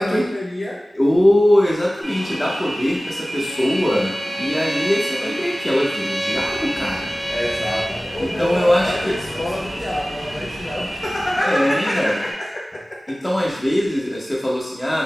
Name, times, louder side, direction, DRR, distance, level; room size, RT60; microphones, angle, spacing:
voice 1, 0.0-0.8 7.3-13.3, left 1 dB, 45° left, -4 dB, 0.7 m, -27 dB
voice 2, 0.9-7.1 8.2-9.1 11.4-12.2 13.1-15.0, left 1 dB, 20° left, -5 dB, 1.1 m, -21 dB
sound 1, 2.0-12.3, right 1 dB, 45° right, 1.1 m, -31 dB
Bowed string instrument, 3.5-8.0, right 1 dB, ahead, 0.3 m, -29 dB
sound 2, 6.3-11.4, equal, 65° left, 1.2 m, -37 dB
3.8 x 3.5 x 2.2 m, 0.81 s
cardioid pair, 50°, 0 cm